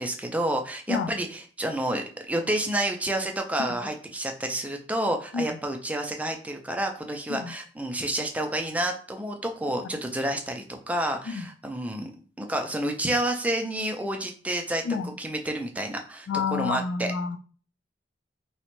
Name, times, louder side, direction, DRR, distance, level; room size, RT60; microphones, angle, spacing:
voice 1, 0.0-12.1 12.4-14.8 15.2-17.1, right 1 dB, 10° right, 3 dB, 0.3 m, -29 dB
voice 2, 16.3-17.4, left 5 dB, 80° left, 8 dB, 0.3 m, -29 dB
3.8 x 2.1 x 2.9 m, 0.42 s
head